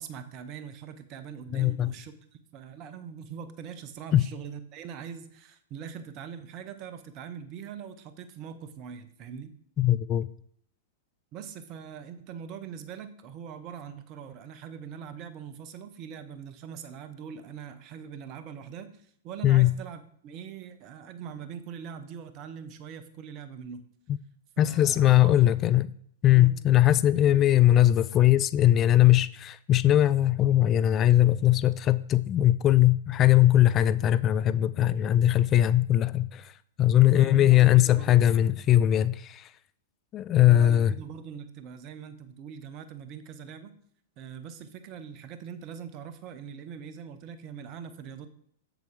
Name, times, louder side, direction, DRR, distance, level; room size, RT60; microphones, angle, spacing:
voice 1, 0.0-9.5 11.3-23.8 24.6-25.5 26.3-26.5 27.2-27.6 37.0-38.2 40.4-43.7 44.2-48.3, right 7 dB, 40° right, 0.9 m, -42 dB
voice 2, 1.5-1.9 4.1-4.3 9.8-10.3 19.4-19.7 24.6-25.9 26.2-36.5 36.8-39.5 40.1-40.9, left 13 dB, 30° left, 0.3 m, -20 dB
7.7 x 7.0 x 3.7 m
figure-of-eight pair, 105°, 0 cm